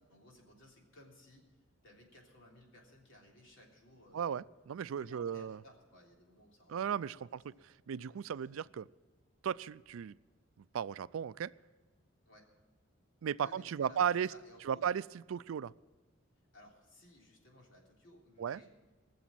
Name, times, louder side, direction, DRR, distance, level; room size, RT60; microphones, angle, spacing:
voice 1, 0.1-1.5 1.8-4.4 5.0-7.1 7.5-7.6 12.2-12.5 13.4-14.8 16.5-18.7, left 1 dB, 65° left, 0 dB, 3.4 m, -59 dB
voice 2, 4.1-5.6 6.7-8.9 9.4-10.2 10.7-11.5 13.2-14.3 14.6-15.7 18.4-18.6, right 8 dB, 80° right, 18 dB, 0.4 m, -36 dB
20.0 x 7.1 x 7.6 m, 1.3 s
head